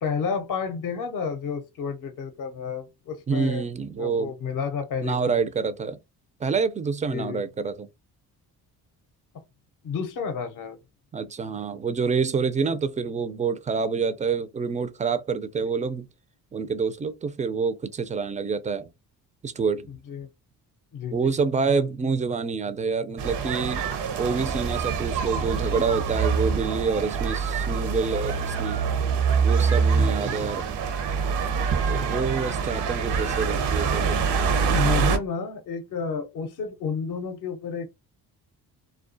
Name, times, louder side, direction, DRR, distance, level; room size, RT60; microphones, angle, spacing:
voice 1, 0.0-3.6 4.0-5.4 7.1-7.4 9.8-10.8 20.1-20.3 20.9-21.3 29.9-30.5 34.7-37.9, left 6 dB, 50° left, 0.6 m, -31 dB
voice 2, 3.3-4.3 5.0-6.0 6.4-7.9 11.1-16.1 16.5-18.9 19.4-19.9 21.1-23.8 24.2-28.8 29.4-30.7 31.9-34.2, right 5 dB, 20° right, 0.3 m, -27 dB
sound 1, 23.2-35.2, right 6 dB, 70° right, 0.7 m, -25 dB
2.3 x 2.3 x 2.5 m
supercardioid pair, 55°, 42 cm